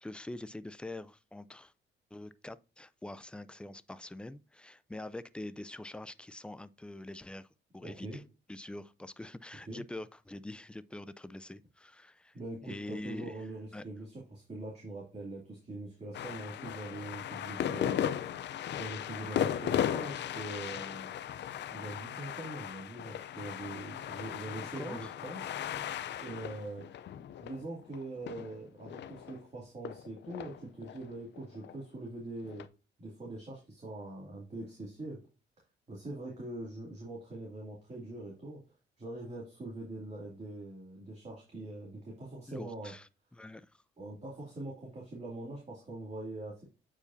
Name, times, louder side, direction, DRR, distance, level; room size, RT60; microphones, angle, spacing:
voice 1, 0.0-1.7 2.1-7.5 7.7-8.2 8.5-12.4 12.6-13.4 13.7-13.8 24.6-25.1 42.5-43.8, left 2 dB, 5° left, 0.4 m, -45 dB
voice 2, 7.8-8.2 9.7-9.8 12.3-18.0 18.7-21.1 21.7-25.4 26.2-26.8 27.4-32.6 33.0-35.2 35.9-38.6 39.0-42.9 44.0-46.6, right 2 dB, 35° right, 2.5 m, -43 dB
sound 1, 16.1-29.4 29.9-31.8 32.4-32.7, left 10 dB, 60° left, 0.5 m, -37 dB
8.6 x 4.8 x 2.7 m
cardioid pair, 90°, 20 cm